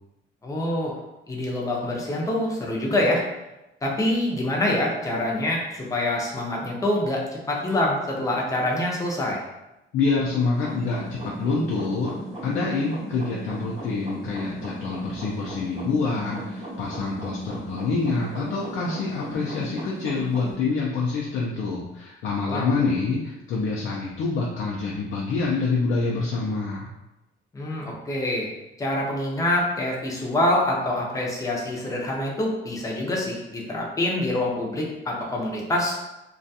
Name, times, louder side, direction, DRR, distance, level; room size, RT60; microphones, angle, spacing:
voice 1, 0.4-0.9 1.3-3.2 3.8-9.4 22.5-22.8 27.5-28.5 28.8-35.9, left 1 dB, 15° left, -2 dB, 0.5 m, -25 dB
voice 2, 9.9-12.2 12.4-26.9, left 4 dB, 75° left, -4 dB, 0.5 m, -26 dB
sound 1, 10.5-20.5, right 1 dB, 30° right, 0.8 m, -36 dB
2.4 x 2.3 x 2.6 m, 0.96 s
cardioid pair, 125°, 20 cm